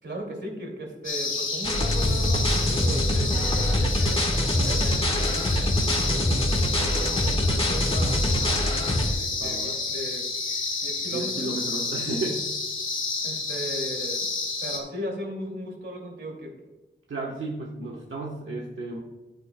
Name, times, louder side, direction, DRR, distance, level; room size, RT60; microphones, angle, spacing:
voice 1, 0.0-6.4 6.8-8.6 9.0-10.2 10.8-11.5 13.2-14.3 14.6-16.5, right 1 dB, 65° right, 1 dB, 2.5 m, -37 dB
sound 1, 1.0-14.8, left 3 dB, 80° left, 1.8 m, -30 dB
sound 2, 1.6-9.1, left 1 dB, 30° left, 1.5 m, -24 dB
voice 2, 9.4-9.8 11.1-12.5 17.1-19.0, right 2 dB, 90° right, -3 dB, 1.2 m, -33 dB
11.0 x 9.2 x 2.2 m, 1.2 s
wide cardioid pair, 105°, 20 cm